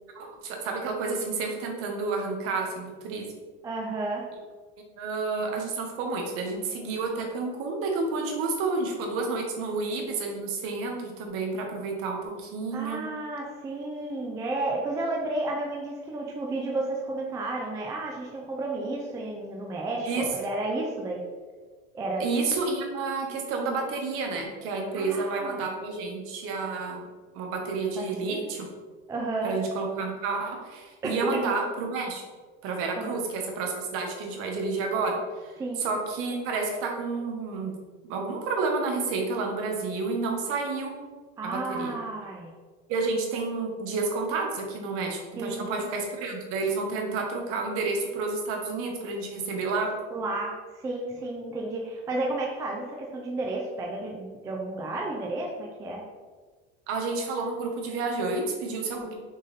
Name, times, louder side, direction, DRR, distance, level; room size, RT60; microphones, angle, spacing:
voice 1, 0.1-3.3 5.0-13.1 20.0-20.2 22.2-27.1 27.3-28.7 29.4-32.2 32.6-37.7 38.1-40.9 41.4-42.0 42.9-49.9 56.9-59.1, right 3 dB, 45° right, 2 dB, 1.2 m, -30 dB
voice 2, 3.6-4.3 12.7-21.2 21.9-22.2 25.0-25.6 28.0-28.5 29.1-29.5 31.0-31.1 33.0-33.2 35.6-35.8 41.4-42.5 45.4-45.8 50.1-56.0, right 2 dB, 10° right, -1 dB, 0.3 m, -32 dB
6.3 x 3.9 x 4.1 m, 1.4 s
cardioid pair, 170°, 31 cm